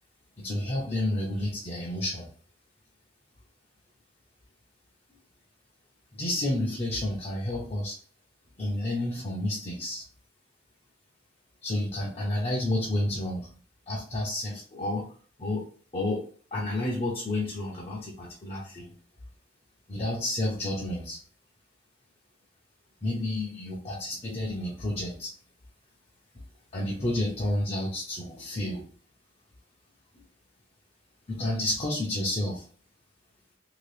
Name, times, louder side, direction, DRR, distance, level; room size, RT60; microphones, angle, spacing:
voice 1, 0.4-2.3 6.1-8.0 8.6-10.0 11.6-13.5 13.9-15.1 15.4-15.7 15.9-18.9 19.9-21.2 23.0-25.3 26.7-28.9 31.3-32.6, left 1 dB, 35° left, -4 dB, 0.7 m, -30 dB
2.9 x 2.9 x 3.2 m, 0.43 s
head